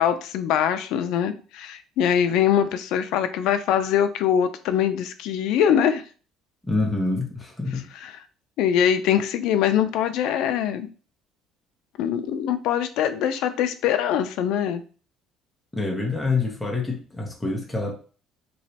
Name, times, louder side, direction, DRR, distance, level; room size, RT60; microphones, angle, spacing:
voice 1, 0.0-6.0 8.0-8.1 8.6-10.9 12.0-14.8, left 9 dB, 70° left, 0.4 m, -23 dB
voice 2, 6.6-7.8 15.7-17.9, left 3 dB, 5° left, 0.8 m, -26 dB
3.1 x 3.0 x 2.8 m
cardioid pair, 155°, 0 cm